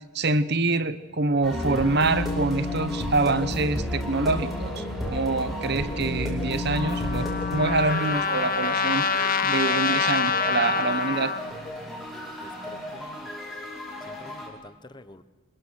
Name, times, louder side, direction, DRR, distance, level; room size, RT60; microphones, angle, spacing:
voice 1, 0.1-9.1 9.4-11.3, right 3 dB, 50° right, 13 dB, 1.0 m, -26 dB
sound 1, 1.4-14.5, left 1 dB, ahead, 4.9 m, -32 dB
Trumpet, 6.7-11.4, left 5 dB, 40° left, 1.3 m, -26 dB
voice 2, 12.4-13.3 14.1-15.2, left 1 dB, 20° left, 12 dB, 0.9 m, -48 dB
27.0 x 20.5 x 6.5 m, 1.3 s
head